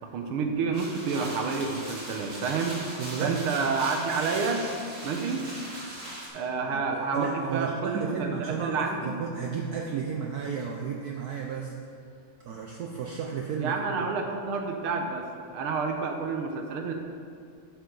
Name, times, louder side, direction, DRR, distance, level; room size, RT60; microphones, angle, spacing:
voice 1, 0.0-2.8 3.2-4.7 5.0-5.5 6.3-9.1 13.6-15.3 15.5-16.9, right 4 dB, 90° right, 3 dB, 1.8 m, -29 dB
sound 1, 0.7-6.3, right 1 dB, 35° right, 2.2 m, -39 dB
voice 2, 3.0-3.4 6.7-11.7 12.4-13.8 14.0-14.1, right 6 dB, 75° right, 1 dB, 0.9 m, -33 dB
10.5 x 7.1 x 3.9 m, 2.3 s
omnidirectional pair, 2.3 m